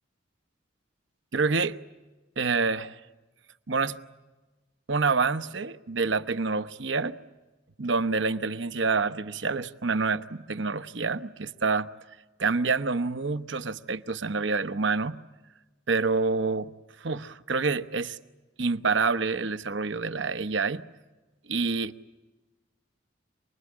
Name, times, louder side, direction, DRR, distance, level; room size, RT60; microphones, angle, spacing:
voice 1, 1.3-1.8 2.4-3.0 3.7-4.0 4.9-7.2 7.8-11.9 12.4-15.2 15.9-16.7 17.0-18.2 18.6-20.8 21.5-21.9, right 4 dB, 65° right, 1.0 m, -27 dB
28.0 x 21.0 x 9.8 m
head